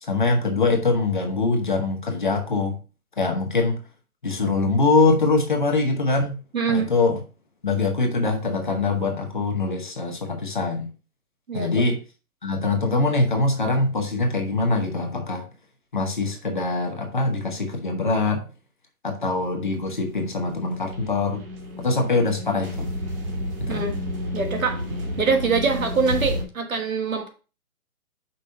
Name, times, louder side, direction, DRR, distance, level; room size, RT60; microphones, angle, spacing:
voice 1, 0.0-2.8 3.2-3.8 4.2-6.4 6.7-7.2 7.6-10.9 11.5-12.0 12.4-15.4 15.9-18.5 19.0-21.4 21.8-22.9 23.6-23.9, left 3 dB, 35° left, 3 dB, 0.9 m, -23 dB
voice 2, 6.5-6.9 11.5-11.8 23.7-24.0 24.3-24.8 25.2-27.3, right 4 dB, 65° right, 5 dB, 1.7 m, -24 dB
sound 1, 19.4-26.4, equal, 40° right, 1.5 m, -31 dB
5.5 x 4.0 x 5.2 m, 0.33 s
hypercardioid pair, 180°, 44 cm